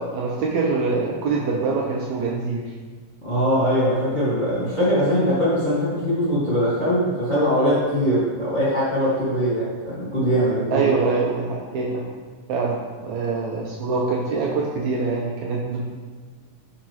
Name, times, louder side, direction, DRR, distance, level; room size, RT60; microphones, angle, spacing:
voice 1, 0.0-2.7 10.7-12.0 12.5-15.9, right 4 dB, 70° right, -2 dB, 1.9 m, -24 dB
voice 2, 3.2-10.9, equal, 25° left, -9 dB, 1.6 m, -21 dB
9.2 x 4.3 x 4.6 m, 1.5 s
omnidirectional pair, 3.9 m